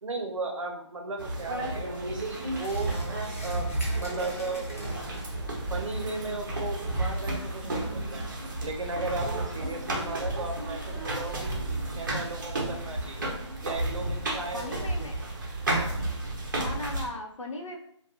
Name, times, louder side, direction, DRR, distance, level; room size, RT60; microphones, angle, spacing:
voice 1, 0.0-2.9 3.4-4.7 5.7-8.2 8.6-11.6 12.0-13.3 13.6-15.1, right 3 dB, 80° right, 3 dB, 0.6 m, -36 dB
sound 1, 1.2-17.1, right 2 dB, 40° right, 0.6 m, -32 dB
sound 2, 2.6-5.5, left 1 dB, 30° left, 0.5 m, -46 dB
voice 2, 14.5-15.2 16.5-17.8, left 2 dB, 85° left, 1 dB, 0.6 m, -37 dB
2.3 x 2.2 x 2.9 m, 0.69 s
figure-of-eight pair, 165°, 16 cm